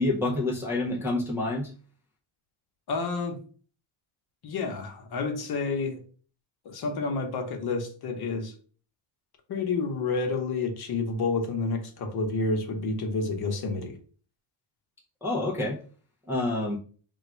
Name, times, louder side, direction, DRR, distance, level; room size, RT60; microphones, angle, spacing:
voice 1, 0.0-1.7 15.2-15.8 16.3-16.8, left 2 dB, 5° right, -4 dB, 0.4 m, -27 dB
voice 2, 2.9-3.4 4.4-6.0 6.6-8.5 9.5-14.0, left 3 dB, 50° left, 4 dB, 1.0 m, -29 dB
3.6 x 2.3 x 4.3 m, 0.41 s
cardioid pair, 160°, 49 cm